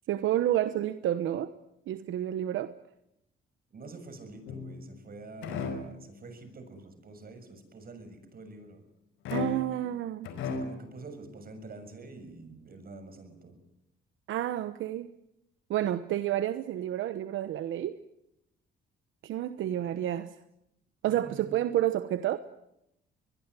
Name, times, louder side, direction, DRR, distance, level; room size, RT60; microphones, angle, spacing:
voice 1, 0.1-1.5 1.9-2.7 9.3-10.3 14.3-15.1 15.7-18.0 19.2-20.3 21.0-22.4, right 12 dB, 80° right, 12 dB, 1.0 m, -30 dB
voice 2, 3.7-8.8 10.4-13.6 21.2-21.6, right 3 dB, 50° right, 8 dB, 6.9 m, -47 dB
sound 1, 4.5-5.0 5.4-6.0 9.2-9.9 10.2-10.9, left 4 dB, 85° left, 4.8 m, -35 dB
23.0 x 21.5 x 9.8 m, 0.85 s
cardioid pair, 90°, 20 cm